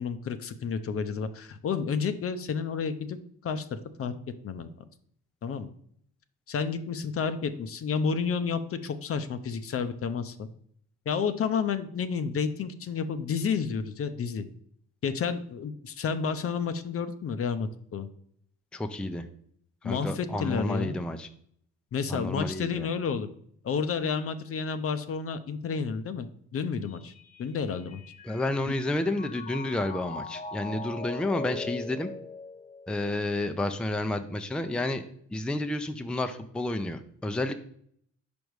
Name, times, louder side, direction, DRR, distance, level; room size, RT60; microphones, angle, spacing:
voice 1, 0.0-3.2 3.4-4.1 4.4-4.7 5.4-5.7 6.5-10.5 11.1-14.5 15.0-18.1 19.8-21.0 21.9-23.3 23.6-27.1 27.4-28.0 28.7-28.8, left 6 dB, 50° left, 11 dB, 0.6 m, -30 dB
voice 2, 18.7-19.3 19.8-21.3 22.1-22.9 28.3-32.1 32.9-35.0 35.3-37.5, left 2 dB, 5° left, 8 dB, 0.4 m, -30 dB
Mallet percussion, 26.9-33.3, left 3 dB, 25° left, 1.0 m, -41 dB
5.2 x 5.2 x 4.7 m, 0.65 s
cardioid pair, 90°, 30 cm